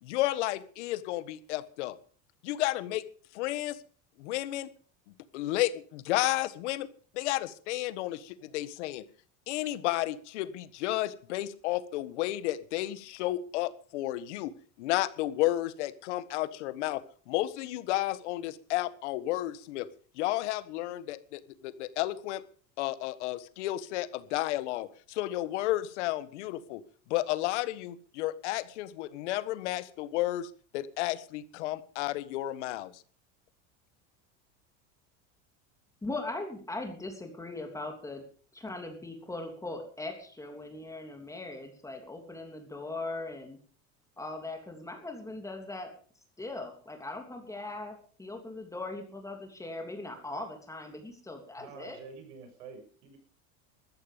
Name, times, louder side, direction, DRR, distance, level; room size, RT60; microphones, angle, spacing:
voice 1, 0.0-1.9 2.4-3.0 3.3-3.8 4.2-4.7 5.3-6.9 7.1-9.0 9.5-14.5 14.8-19.9 20.2-22.4 22.8-26.8 27.1-33.0, left 16 dB, 85° left, 14 dB, 1.5 m, -32 dB
voice 2, 36.0-38.2 38.5-43.6 44.2-45.9 46.4-52.0, left 2 dB, 10° left, 3 dB, 3.1 m, -40 dB
voice 3, 51.6-53.2, right 5 dB, 85° right, 5 dB, 7.0 m, -48 dB
14.5 x 13.5 x 5.1 m, 0.42 s
supercardioid pair, 135°, 34 cm